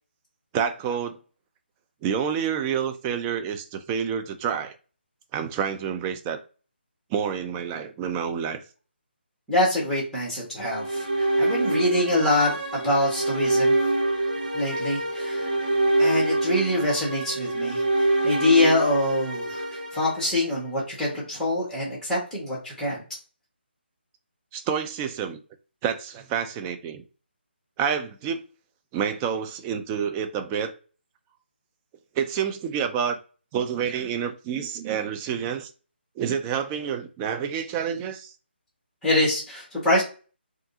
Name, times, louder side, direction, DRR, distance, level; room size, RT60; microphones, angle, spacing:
voice 1, 0.5-1.2 2.0-4.8 5.3-6.4 7.1-8.6 24.5-25.4 25.8-27.0 27.8-28.4 28.9-30.7 32.2-33.2 33.5-35.7 36.2-38.3, right 7 dB, 15° right, 0.3 m, -28 dB
voice 2, 9.5-13.8 14.5-15.5 16.0-23.0 39.0-40.0, left 1 dB, 5° left, 1.5 m, -25 dB
sound 1, 10.6-20.8, right 2 dB, 45° right, 1.2 m, -25 dB
3.4 x 2.4 x 2.7 m
figure-of-eight pair, 155°, 6 cm